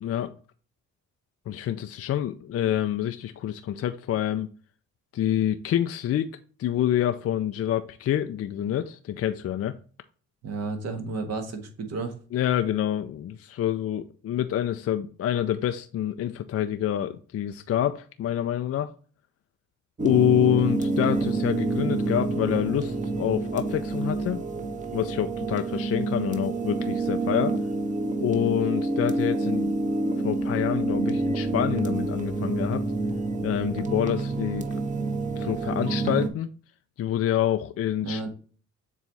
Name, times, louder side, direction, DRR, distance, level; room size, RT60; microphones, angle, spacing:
voice 1, 0.0-0.3 1.5-4.5 5.1-9.7 12.3-18.9 20.0-24.4 24.9-27.5 28.2-29.7 30.2-32.8 33.4-34.7 35.4-36.5 37.0-38.3, left 11 dB, 50° left, 0.5 m, -27 dB
voice 2, 10.4-12.2 38.0-38.3, right 3 dB, 60° right, 1.6 m, -32 dB
sound 1, 20.0-36.3, right 2 dB, 25° right, 1.1 m, -28 dB
7.3 x 3.2 x 4.0 m
cardioid pair, 90°, 30 cm